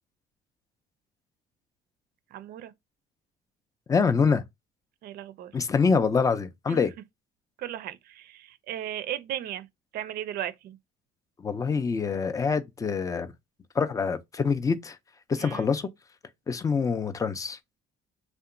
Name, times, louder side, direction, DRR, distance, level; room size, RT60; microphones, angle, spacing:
voice 1, 2.3-2.7 5.0-5.5 6.7-6.8 7.6-9.7 9.9-10.8 15.4-15.6, right 11 dB, 65° right, 0.4 m, -36 dB
voice 2, 3.9-4.4 5.5-6.9 11.4-13.3 13.8-15.0 15.3-15.9 16.5-17.6, left 5 dB, 20° left, 0.3 m, -25 dB
2.8 x 2.1 x 2.5 m
cardioid pair, 110°, 17 cm